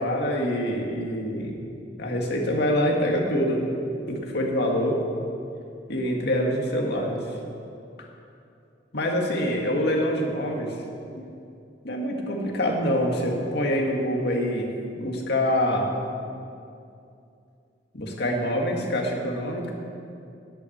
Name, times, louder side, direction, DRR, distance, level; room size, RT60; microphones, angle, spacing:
voice 1, 0.0-1.7 2.0-3.7 4.1-5.0 5.9-7.3 8.0-8.1 8.9-10.8 11.2-11.3 11.8-14.7 15.0-15.9 17.9-19.7, equal, 65° left, 0 dB, 1.9 m, -25 dB
10.5 x 8.6 x 8.7 m, 2.5 s
head